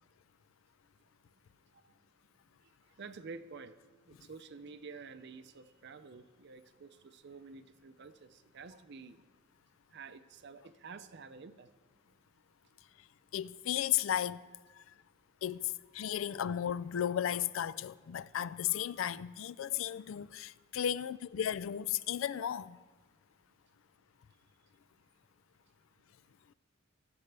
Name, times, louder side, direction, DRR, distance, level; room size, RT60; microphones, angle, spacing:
voice 1, 3.0-3.7 4.1-9.2 9.9-11.7, right 4 dB, 55° right, 0.5 m, -50 dB
voice 2, 13.3-14.4 14.7-14.8 15.4-22.8, left 10 dB, 75° left, 0.4 m, -34 dB
17.0 x 13.0 x 3.4 m
head